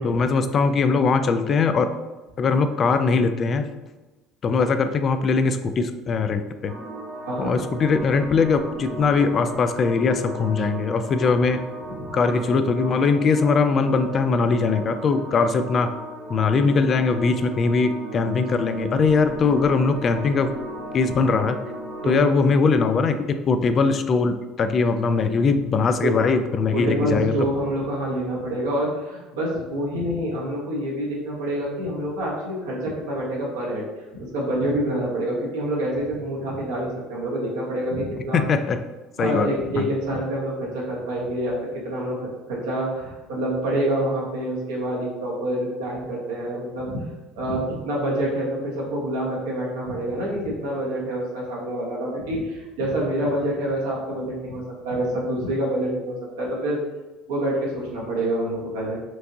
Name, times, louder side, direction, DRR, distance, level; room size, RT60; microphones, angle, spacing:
voice 1, 0.0-1.9 2.4-3.7 4.4-6.7 7.4-11.6 12.1-15.9 16.3-20.5 20.9-21.6 22.1-27.3 38.3-38.8 39.2-39.5 39.8-39.9, left 4 dB, 40° left, 9 dB, 0.4 m, -21 dB
sound 1, 6.7-22.2, right 1 dB, 55° right, 0.8 m, -36 dB
voice 2, 7.2-7.6 11.4-11.5 12.0-12.1 22.0-22.3 26.0-26.1 26.7-33.8 34.1-38.4 39.2-42.2 42.5-47.1 47.3-56.8 57.3-59.0, right 1 dB, 85° right, -4 dB, 1.2 m, -27 dB
4.4 x 2.7 x 2.7 m, 1.1 s
hypercardioid pair, 75°, 0 cm